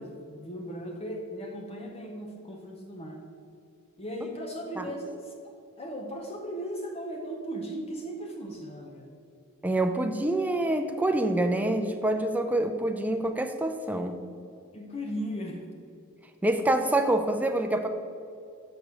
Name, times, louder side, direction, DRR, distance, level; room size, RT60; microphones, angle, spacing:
voice 1, 0.0-3.2 4.0-5.3 5.8-9.2 14.7-15.7, equal, 30° left, 1 dB, 0.7 m, -37 dB
voice 2, 9.6-14.2 16.4-17.9, right 1 dB, 5° right, 5 dB, 0.3 m, -26 dB
6.0 x 5.2 x 6.3 m, 2.6 s
head